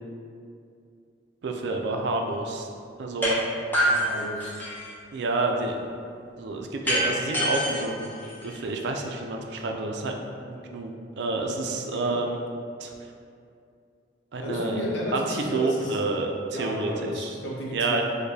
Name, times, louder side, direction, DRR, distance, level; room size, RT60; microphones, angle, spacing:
voice 1, 1.4-2.7 3.0-3.3 5.1-5.8 6.4-8.1 8.4-10.2 10.5-10.9 11.2-12.4 12.8-12.9 14.3-14.8 15.1-17.3 17.7-18.0, right 2 dB, 65° right, 2 dB, 0.4 m, -29 dB
sound 1, 3.2-3.4 3.7-4.9 6.9-8.8, equal, 10° left, 0.6 m, -26 dB
voice 2, 3.9-4.5 11.7-12.2 14.4-16.0 16.5-18.0, equal, 75° left, -5 dB, 0.8 m, -33 dB
4.7 x 2.2 x 2.7 m, 2.4 s
head